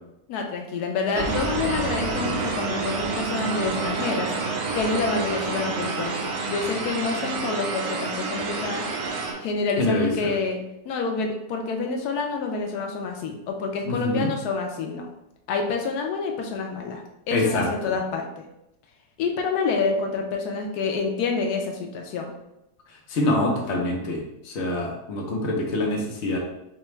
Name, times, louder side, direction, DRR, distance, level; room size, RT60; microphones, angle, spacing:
voice 1, 0.3-4.3 4.7-8.8 9.4-10.6 10.8-15.1 15.5-18.4 19.2-22.3, left 4 dB, 85° left, 3 dB, 1.1 m, -28 dB
sound 1, 1.1-9.3, right 4 dB, 80° right, 1.2 m, -28 dB
voice 2, 9.8-10.3 13.9-14.3 17.3-17.7 23.1-26.4, left 1 dB, 55° left, 0 dB, 1.0 m, -25 dB
4.9 x 2.3 x 3.1 m, 0.87 s
omnidirectional pair, 1.6 m